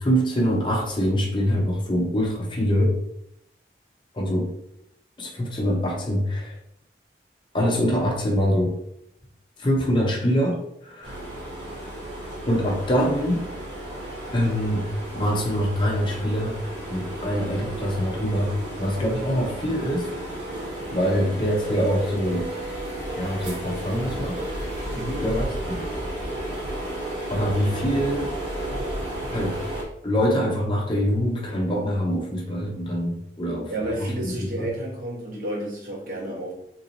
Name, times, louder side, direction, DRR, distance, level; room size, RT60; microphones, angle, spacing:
voice 1, 0.0-3.0 4.1-4.5 5.2-6.6 7.5-8.7 9.6-11.2 12.5-13.4 14.3-14.9 15.1-16.6 16.9-20.1 20.9-22.5 23.2-24.4 25.2-25.8 27.3-28.3 29.3-29.6 30.0-33.7 34.0-34.7, equal, 25° left, -1 dB, 0.6 m, -24 dB
sound 1, 11.0-29.8, right 1 dB, 90° right, 1.4 m, -33 dB
voice 2, 24.9-25.3 33.7-36.5, right 1 dB, 50° right, -4 dB, 1.1 m, -31 dB
3.0 x 2.7 x 3.8 m, 0.79 s
head